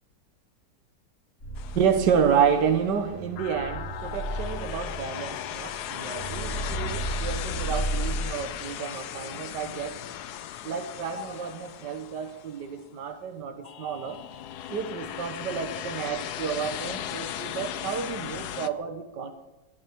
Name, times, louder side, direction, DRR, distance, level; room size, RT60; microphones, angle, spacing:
sound 1, 1.4-8.2, right 2 dB, 45° left, 5.3 m, -34 dB
sound 2, 1.6-2.6 3.4-12.8 13.6-18.7, left 11 dB, 70° left, 1.2 m, -37 dB
voice 1, 1.8-10.0 10.6-14.2 14.7-19.3, right 7 dB, 70° right, 7 dB, 1.8 m, -29 dB
22.5 x 12.0 x 4.6 m, 1.0 s
omnidirectional pair, 1.9 m